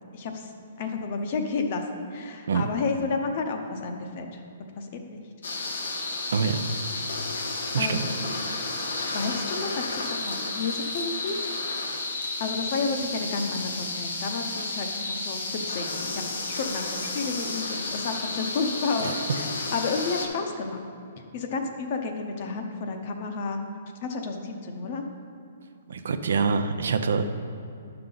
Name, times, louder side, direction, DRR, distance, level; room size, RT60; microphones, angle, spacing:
voice 1, 0.1-0.5 0.8-1.8 2.1-5.2 7.3-8.2 9.1-11.4 12.4-20.9 21.3-23.6 24.0-25.1, left 4 dB, 35° left, 5 dB, 0.7 m, -31 dB
sound 1, 5.4-20.3, left 3 dB, 85° left, 1.3 m, -32 dB
voice 2, 6.3-6.6 7.7-8.1 19.0-19.2 25.9-27.2, right 5 dB, 75° right, 9 dB, 0.6 m, -25 dB
10.5 x 5.8 x 3.9 m, 2.6 s
hypercardioid pair, 170°, 0 cm